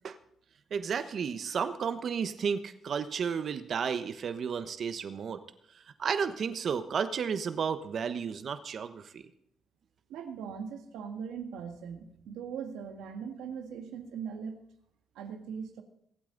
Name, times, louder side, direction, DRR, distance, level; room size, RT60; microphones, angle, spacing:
voice 1, 0.7-5.4 5.7-9.2, right 6 dB, 55° right, 10 dB, 1.1 m, -32 dB
voice 2, 10.1-14.6 15.1-15.8, right 7 dB, 90° right, 6 dB, 1.7 m, -40 dB
23.5 x 8.7 x 4.0 m, 0.73 s
cardioid pair, 90°, 0 cm